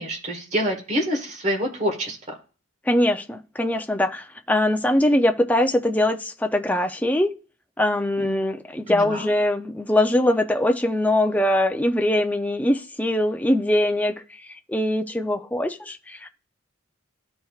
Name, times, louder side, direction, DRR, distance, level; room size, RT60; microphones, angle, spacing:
voice 1, 0.0-2.2 8.2-8.3 8.9-9.3, equal, 35° right, 2 dB, 1.5 m, -26 dB
voice 2, 2.9-7.3 7.8-14.1 14.4-16.3, left 1 dB, 10° left, 5 dB, 0.5 m, -22 dB
13.5 x 4.5 x 2.4 m, 0.37 s
head